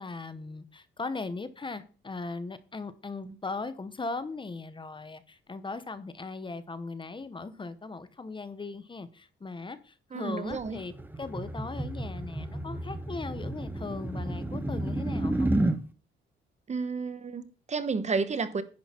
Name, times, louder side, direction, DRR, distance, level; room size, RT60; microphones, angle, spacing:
voice 1, 0.0-15.5, left 3 dB, 25° left, 1.0 m, -38 dB
voice 2, 10.1-10.8 16.7-18.6, right 4 dB, 35° right, 1.0 m, -31 dB
sound 1, 10.5-15.8, right 1 dB, 10° right, 1.0 m, -31 dB
10.5 x 6.3 x 4.4 m
cardioid pair, 90°, 20 cm